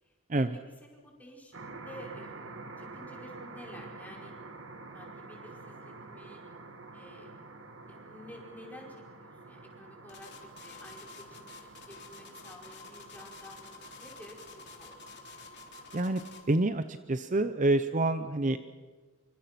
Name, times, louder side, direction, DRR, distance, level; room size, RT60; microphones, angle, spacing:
voice 1, 0.0-0.4 0.8-4.3 4.9-6.4 6.9-7.3 7.8-11.5 11.9-15.2, equal, 5° left, -1 dB, 4.9 m, -51 dB
sound 1, 1.5-16.2, right 3 dB, 60° right, 2.2 m, -48 dB
sound 2, 10.1-16.5, left 3 dB, 50° left, 3.6 m, -49 dB
voice 2, 16.5-18.6, right 2 dB, 35° right, 10 dB, 0.7 m, -27 dB
27.0 x 24.5 x 6.0 m, 1.5 s
head